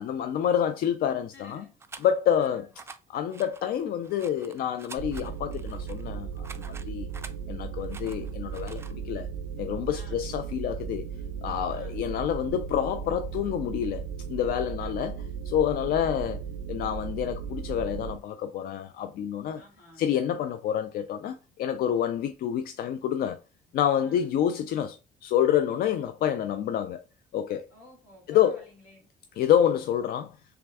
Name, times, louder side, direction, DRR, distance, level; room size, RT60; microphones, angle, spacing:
voice 1, 0.0-1.6 2.0-2.7 3.1-7.1 7.5-9.3 9.6-11.0 11.4-14.0 14.3-15.1 15.5-16.4 16.7-19.6 20.0-23.4 23.7-27.0 27.3-27.7 28.3-28.6 29.4-30.3, left 9 dB, 60° left, 0.4 m, -27 dB
voice 2, 1.3-1.7 2.3-2.7 9.9-10.3 11.7-12.0 14.7-15.2 19.6-20.1 24.0-24.3 27.7-29.1, left 1 dB, 85° left, 2.3 m, -52 dB
sound 1, 1.8-2.5 2.7-3.0 3.3-7.3 7.8-8.9, right 4 dB, 15° right, 0.3 m, -47 dB
sound 2, 5.0-18.2, right 7 dB, 85° right, 0.4 m, -36 dB
3.5 x 3.3 x 3.4 m
cardioid pair, 110°, 17 cm